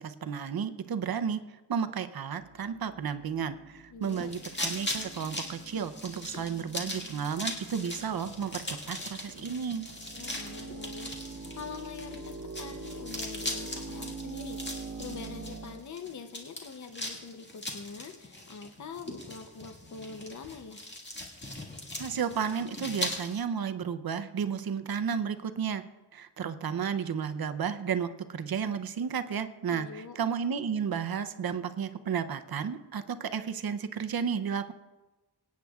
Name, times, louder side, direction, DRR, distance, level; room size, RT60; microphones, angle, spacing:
voice 1, 0.0-1.4 1.7-9.9 22.0-25.8 26.1-34.7, right 7 dB, 60° right, 10 dB, 0.7 m, -32 dB
sound 1, 2.4-15.8, right 3 dB, 45° right, 1.0 m, -45 dB
voice 2, 3.9-4.3 10.1-20.8 29.7-30.2, left 5 dB, 45° left, 7 dB, 0.7 m, -44 dB
sound 2, 4.0-23.4, left 1 dB, 25° left, 1.8 m, -40 dB
25.0 x 9.4 x 2.4 m, 1.1 s
wide cardioid pair, 170°, 42 cm